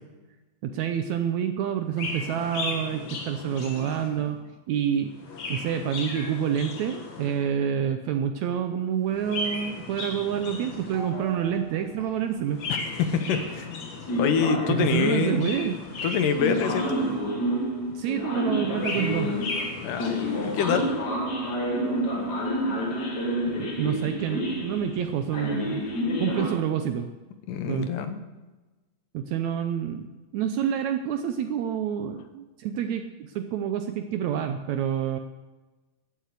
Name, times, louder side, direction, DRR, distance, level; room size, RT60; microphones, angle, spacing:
voice 1, 0.6-4.4 4.7-5.1 5.5-12.6 14.7-15.8 18.0-19.3 23.5-25.8 26.2-27.1 27.7-27.9 29.1-30.1 30.3-35.2, right 9 dB, 75° right, 8 dB, 1.7 m, -28 dB
Chirp tweet, 1.9-4.4 5.1-7.5 9.1-11.2 12.5-14.4 15.2-17.5 18.5-21.1, left 3 dB, 55° left, 3.0 m, -36 dB
sound 1, 10.9-11.9 12.8-13.0 13.3-13.7 14.1-15.4 16.4-26.5, equal, 40° left, 1.9 m, -29 dB
voice 2, 12.7-13.7 14.1-15.7 16.0-17.0 19.8-20.9 27.5-28.2, left 6 dB, 75° left, 9 dB, 2.5 m, -26 dB
14.5 x 8.3 x 8.2 m, 1.2 s
omnidirectional pair, 3.9 m